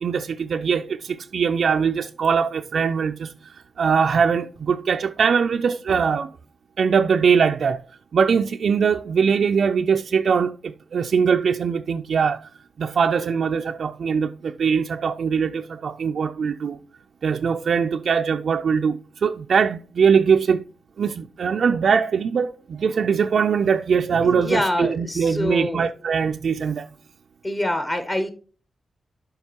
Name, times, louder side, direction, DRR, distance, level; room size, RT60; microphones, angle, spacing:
voice 1, 0.0-6.3 6.8-7.8 8.1-12.4 12.8-16.8 17.2-20.6 21.0-26.9, right 6 dB, 65° right, 0.3 m, -21 dB
voice 2, 24.2-25.8 27.4-28.3, left 1 dB, 25° left, 0.8 m, -25 dB
11.5 x 5.1 x 2.8 m
wide cardioid pair, 120°, 0 cm